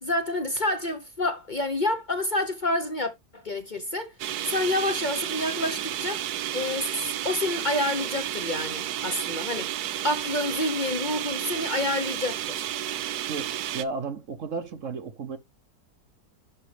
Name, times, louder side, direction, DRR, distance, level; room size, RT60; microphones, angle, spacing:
voice 1, 0.0-4.1 4.5-6.2 6.5-9.7 10.0-12.7, left 1 dB, 35° left, 0.9 m, -28 dB
sound 1, 4.2-13.8, right 11 dB, 80° right, 1.2 m, -32 dB
voice 2, 13.3-15.4, right 4 dB, 55° right, 1.1 m, -34 dB
11.0 x 5.3 x 3.3 m
omnidirectional pair, 1.7 m